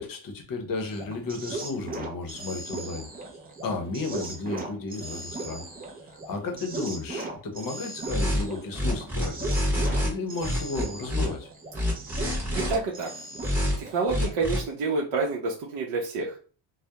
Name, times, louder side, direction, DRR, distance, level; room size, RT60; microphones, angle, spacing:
voice 1, 0.0-3.1 3.6-5.6 6.1-9.6 10.0-11.5, left 3 dB, 45° left, 4 dB, 0.7 m, -33 dB
sound 1, 0.9-14.6, right 2 dB, 20° right, 0.4 m, -38 dB
sound 2, 8.1-8.4 8.7-10.1 10.4-11.3 11.7-12.8 13.4-13.8 14.1-14.6, left 1 dB, 5° right, 0.9 m, -26 dB
voice 2, 12.6-13.1 13.8-16.4, right 3 dB, 65° right, -1 dB, 0.6 m, -28 dB
2.2 x 2.0 x 2.8 m, 0.38 s
cardioid pair, 130°, 46 cm